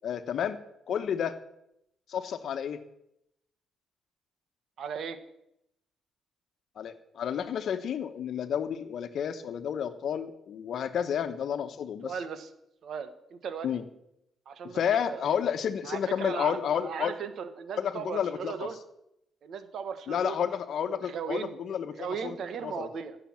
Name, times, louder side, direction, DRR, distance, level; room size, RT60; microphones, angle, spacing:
voice 1, 0.0-0.6 0.9-1.4 2.1-2.8 6.8-12.1 13.6-13.8 14.7-17.1 17.8-18.7 20.1-22.4 22.6-22.9, left 8 dB, 65° left, 10 dB, 1.1 m, -31 dB
voice 2, 4.8-5.2 12.0-12.5 12.8-13.7 14.4-14.8 15.1-15.3 15.8-18.8 19.4-20.4 20.8-21.5 21.9-23.2, right 6 dB, 65° right, 11 dB, 1.4 m, -37 dB
15.0 x 6.8 x 7.4 m, 0.80 s
cardioid pair, 90°, 0 cm